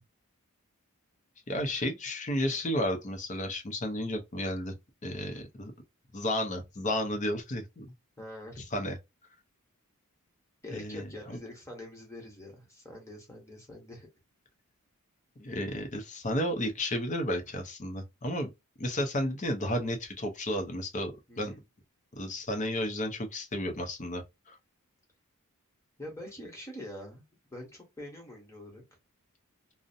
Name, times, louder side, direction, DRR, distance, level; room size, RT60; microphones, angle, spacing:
voice 1, 1.5-4.7 5.0-5.7 6.1-7.9 8.7-9.0 10.7-11.4 15.4-18.5 18.8-21.5 22.1-24.6, left 1 dB, 35° left, 0.6 m, -32 dB
voice 2, 8.2-8.7 10.6-14.1 21.3-21.6 26.0-27.2 27.5-28.8, left 1 dB, 15° left, 1.0 m, -45 dB
2.5 x 2.1 x 2.5 m
head